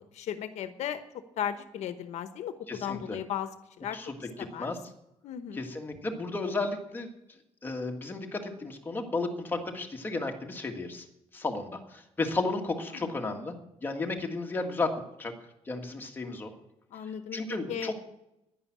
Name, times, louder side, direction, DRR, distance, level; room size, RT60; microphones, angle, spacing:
voice 1, 0.1-3.5 3.8-4.7 5.2-5.7 12.9-13.1 16.9-18.0, left 9 dB, 80° left, 11 dB, 1.0 m, -36 dB
voice 2, 2.7-3.2 3.9-4.1 4.6-4.8 5.6-7.1 7.6-11.1 11.3-13.6 13.8-15.3 15.7-16.5 17.3-18.0, left 3 dB, 15° left, 3 dB, 1.8 m, -33 dB
11.0 x 10.5 x 8.7 m, 0.85 s
cardioid pair, 170°, 11 cm